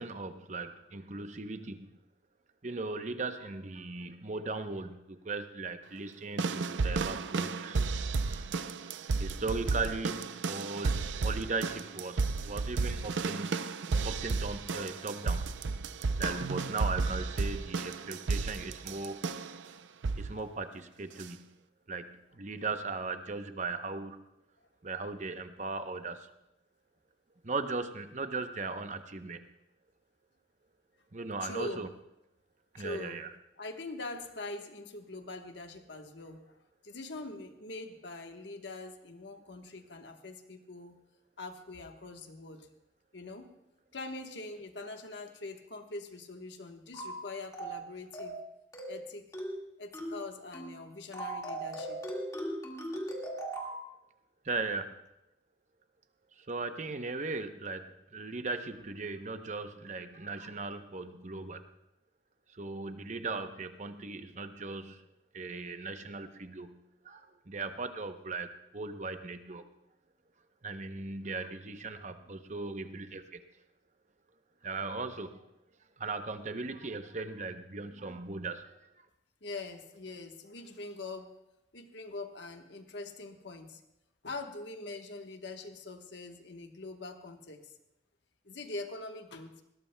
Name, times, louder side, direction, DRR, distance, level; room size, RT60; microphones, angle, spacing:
voice 1, 0.0-1.9 2.6-8.5 9.2-13.6 14.0-15.5 16.2-19.3 20.2-21.5 21.9-24.2 24.8-26.3 27.4-29.4 31.1-31.9 32.7-33.3 54.4-55.0 56.4-61.6 62.5-65.0 65.3-66.8 67.0-69.7 70.6-73.4 74.6-75.4 76.0-78.6, right 3 dB, 40° right, 8 dB, 0.8 m, -38 dB
sound 1, 6.4-19.6 20.0-20.4 21.2-21.3, right 4 dB, 80° right, 0.5 m, -33 dB
voice 2, 31.4-31.8 32.7-33.2 33.6-36.6 36.8-41.0 41.4-42.7 43.1-43.5 43.9-48.4 48.9-49.2 49.8-52.0 79.4-81.3 81.7-83.8 84.2-87.6 88.4-89.5, left 2 dB, 70° left, 5 dB, 1.2 m, -43 dB
sound 2, 46.9-47.2 47.5-47.8 48.1-48.4 48.7-49.0 49.3-49.6 49.9-50.2 50.5-50.8 51.1-53.8, right 1 dB, 20° left, 1.8 m, -38 dB
20.0 x 17.5 x 2.2 m, 0.90 s
head